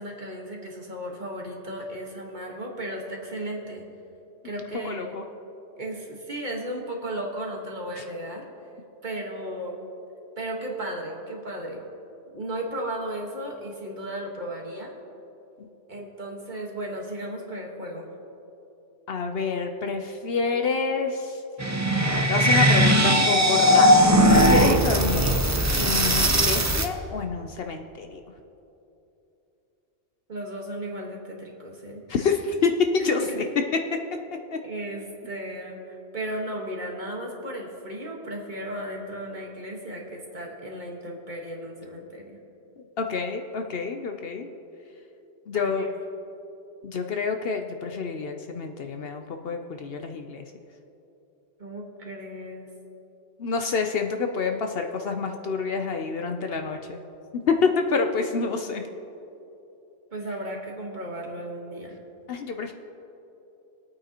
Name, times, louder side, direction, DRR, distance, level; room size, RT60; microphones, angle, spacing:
voice 1, 0.0-3.8 4.4-5.2 5.8-8.4 9.0-9.8 10.4-11.8 12.3-14.9 15.9-18.1 30.3-32.0 33.0-33.4 34.6-42.4 45.5-45.9 51.6-52.7 60.1-62.0, right 1 dB, 40° right, -1 dB, 1.6 m, -35 dB
voice 2, 4.7-5.2 8.0-8.1 19.1-21.4 22.3-25.4 25.8-28.2 32.1-33.4 33.9-34.0 34.5-34.6 43.0-44.5 45.5-45.9 46.8-50.4 53.4-57.0 57.3-58.8 62.3-62.7, left 5 dB, 60° left, 5 dB, 0.8 m, -27 dB
sound 1, 21.6-26.9, equal, 20° right, 0.5 m, -19 dB
22.0 x 8.8 x 2.9 m, 2.9 s
omnidirectional pair, 1.2 m